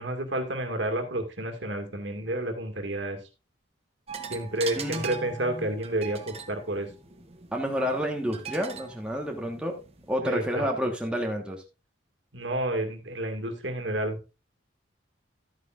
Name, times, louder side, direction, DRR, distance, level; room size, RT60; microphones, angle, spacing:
voice 1, 0.0-3.2 4.3-6.9 10.2-10.7 12.3-14.4, right 1 dB, 65° right, 5 dB, 2.1 m, -30 dB
sound 1, 4.1-10.1, right 6 dB, 30° right, 1.1 m, -41 dB
voice 2, 4.7-5.7 7.5-9.8 10.1-11.6, equal, 5° right, 0 dB, 1.4 m, -30 dB
12.5 x 9.1 x 2.5 m, 0.29 s
head